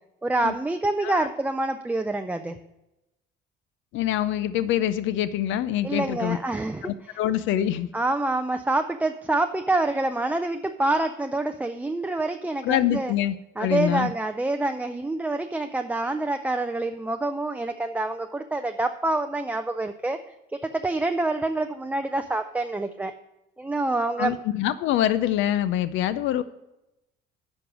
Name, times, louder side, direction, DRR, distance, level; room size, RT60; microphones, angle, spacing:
voice 1, 0.2-2.6 5.8-6.8 7.9-13.1 13.6-20.2 20.6-23.1 23.6-24.3, right 2 dB, 5° right, 6 dB, 0.4 m, -26 dB
voice 2, 3.9-6.4 6.8-7.9 12.6-14.1 24.2-26.4, left 11 dB, 65° left, 14 dB, 0.5 m, -25 dB
9.5 x 5.3 x 6.0 m, 0.93 s
cardioid pair, 105°, 21 cm